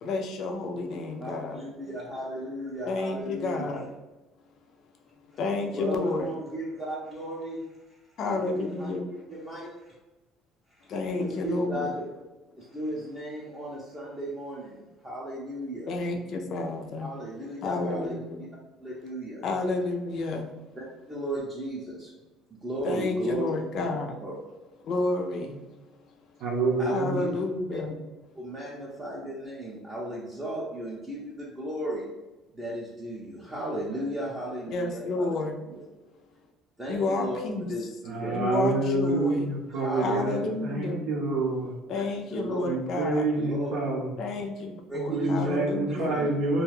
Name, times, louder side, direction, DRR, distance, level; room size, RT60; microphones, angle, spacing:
voice 1, 0.0-1.6 2.9-3.9 5.3-6.3 8.2-9.0 10.9-11.9 15.9-17.1 17.6-18.4 19.4-20.5 22.8-24.1 24.8-25.6 26.9-28.0 34.7-35.5 36.9-37.7 38.3-39.5 40.0-41.1 41.9-43.3 44.2-46.1, left 3 dB, 50° left, 3 dB, 0.4 m, -30 dB
voice 2, 1.2-3.8 5.7-10.0 10.7-12.1 12.6-15.9 17.0-18.5 18.8-19.4 20.7-22.1 22.5-23.9 24.2-24.4 26.8-27.8 28.3-32.1 32.5-35.3 35.7-35.8 36.8-38.4 39.7-40.6 41.9-42.0 42.3-42.6 43.3-43.9 44.9-45.6 45.9-46.3, right 1 dB, 10° right, -7 dB, 0.6 m, -35 dB
voice 3, 26.4-27.2 38.1-41.8 42.6-44.1 45.1-46.6, right 2 dB, 65° right, -2 dB, 0.6 m, -27 dB
2.4 x 2.2 x 3.2 m, 1.1 s
cardioid pair, 140°, 0 cm